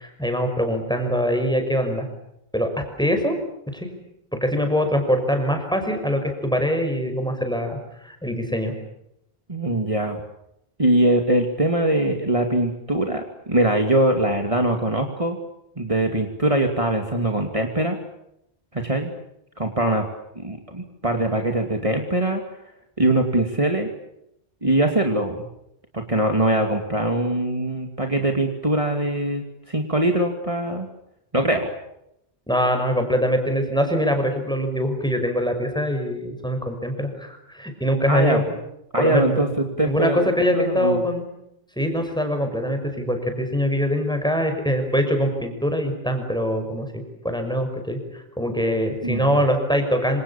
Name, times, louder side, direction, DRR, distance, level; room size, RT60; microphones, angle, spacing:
voice 1, 0.0-2.0 2.5-3.4 3.7-3.9 4.3-8.7 32.5-38.4 39.0-41.2 41.8-46.9 47.2-50.2, equal, 5° left, 6 dB, 5.9 m, -23 dB
voice 2, 9.5-10.2 10.8-15.4 15.8-18.0 18.7-19.1 19.6-20.0 20.4-22.4 23.0-23.9 24.6-25.4 25.9-30.9 31.3-31.7 38.1-38.4 38.9-40.3 40.5-41.0 49.0-49.4, right 1 dB, 30° right, 4 dB, 2.7 m, -22 dB
27.5 x 27.0 x 7.3 m, 0.80 s
omnidirectional pair, 1.0 m